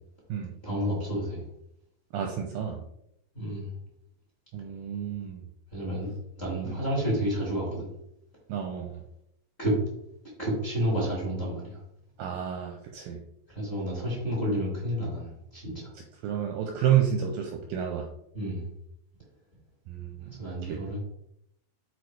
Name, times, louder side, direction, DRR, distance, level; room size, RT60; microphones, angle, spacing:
voice 1, 0.6-1.4 3.3-3.7 5.7-6.1 6.4-7.9 9.6-9.7 10.4-11.8 13.5-15.7 18.3-18.6 20.4-21.0, equal, 20° left, -5 dB, 2.0 m, -30 dB
voice 2, 2.1-2.8 4.5-5.4 6.6-6.8 8.5-9.0 12.2-13.2 16.2-18.1 19.9-20.8, right 9 dB, 80° right, 3 dB, 2.1 m, -30 dB
6.3 x 4.9 x 4.6 m, 0.78 s
omnidirectional pair, 4.6 m